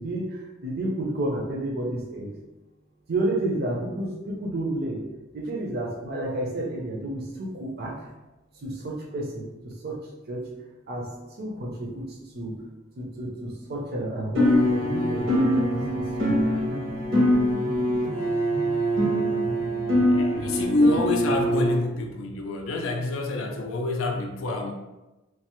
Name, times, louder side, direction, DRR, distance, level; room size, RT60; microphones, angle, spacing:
voice 1, 0.0-2.3 3.1-5.0 5.3-8.1 8.6-10.5 10.9-12.6 13.0-16.4, right 1 dB, 50° right, -3 dB, 0.5 m, -31 dB
sound 1, 14.3-21.7, equal, 80° right, 0.9 m, -23 dB
voice 2, 20.1-24.7, left 2 dB, 70° left, 2 dB, 0.4 m, -26 dB
3.2 x 2.0 x 2.9 m, 1.0 s
head